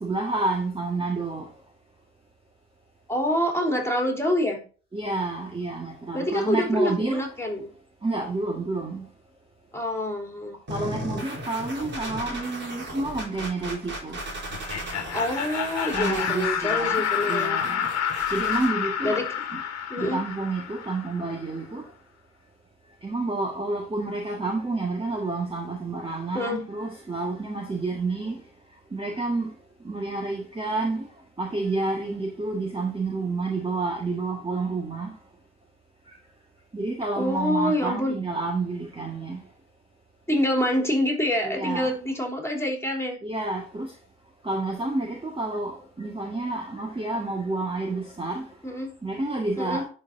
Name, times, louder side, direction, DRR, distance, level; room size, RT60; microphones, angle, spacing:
voice 1, 0.0-1.5 4.9-7.2 8.0-9.1 10.7-14.2 15.9-17.9 18.3-19.2 19.5-19.6 20.0-21.9 23.0-28.4 28.9-29.5 29.8-31.1 31.4-35.2 36.7-39.4 41.4-41.9 43.2-43.9 44.4-48.5 49.0-49.8, right 3 dB, 15° right, 1.8 m, -29 dB
voice 2, 3.1-4.6 6.1-7.7 9.7-10.6 15.1-17.6 19.0-19.4 19.9-20.2 26.3-26.6 37.2-38.1 40.3-43.2 48.6-49.0 49.6-49.8, left 1 dB, 5° left, 3.3 m, -26 dB
sound 1, 10.7-18.7, equal, 30° right, 3.9 m, -36 dB
Laughter, 14.5-21.3, left 8 dB, 50° left, 1.8 m, -29 dB
11.5 x 4.6 x 2.7 m
hypercardioid pair, 60°, 34 cm